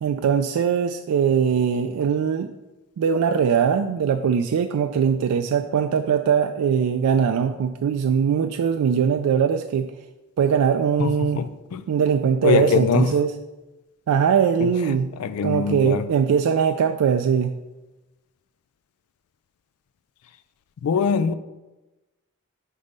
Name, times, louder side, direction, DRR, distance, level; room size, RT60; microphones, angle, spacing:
voice 1, 0.0-2.5 3.0-9.9 10.4-11.4 11.9-13.3 14.1-15.1 15.4-17.5, right 7 dB, 90° right, 0.3 m, -21 dB
voice 2, 11.0-11.8 12.4-13.2 14.6-16.1 20.8-21.4, left 6 dB, 80° left, 0.3 m, -23 dB
5.3 x 4.1 x 5.2 m
head